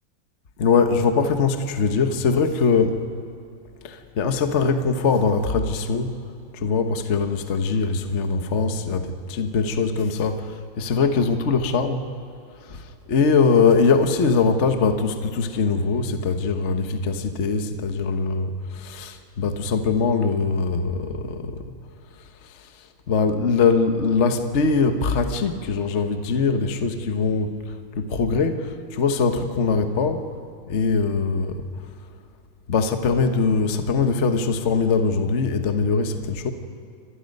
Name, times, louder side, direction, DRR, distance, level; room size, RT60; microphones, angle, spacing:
voice 1, 0.6-3.0 4.2-6.1 6.6-10.3 10.8-12.0 13.1-18.5 18.9-19.1 19.4-21.4 23.1-27.5 28.0-28.6 29.0-30.2 30.7-31.5 32.7-36.2 36.4-36.5, left 5 dB, 45° left, 6 dB, 1.2 m, -21 dB
28.0 x 25.0 x 5.4 m, 2.5 s
omnidirectional pair, 2.1 m